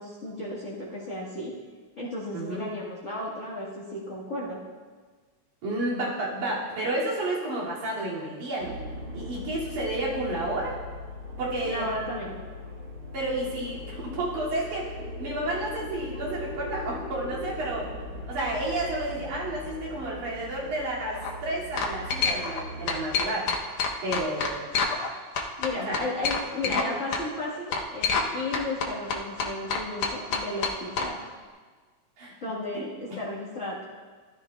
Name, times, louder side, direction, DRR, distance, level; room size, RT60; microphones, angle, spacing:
voice 1, 0.0-1.5 2.0-4.6 11.6-12.4 25.6-31.2 32.4-33.8, left 2 dB, 40° left, -8 dB, 1.1 m, -34 dB
voice 2, 5.6-8.7 9.1-10.8 11.4-11.9 13.1-17.9 18.3-23.5 24.0-24.7 25.7-26.0 26.7-26.8 32.2-32.3 32.7-33.2, right 1 dB, 85° right, -6 dB, 3.9 m, -31 dB
sound 1, 8.6-23.1, left 1 dB, 65° right, 3.6 m, -39 dB
sound 2, 21.0-21.3 21.8-22.6 22.9-25.1 25.4-26.9 27.1-27.2 27.7-28.3 28.5-31.1, left 5 dB, 65° left, 1.4 m, -27 dB
14.0 x 13.0 x 2.3 m, 1.5 s
omnidirectional pair, 3.4 m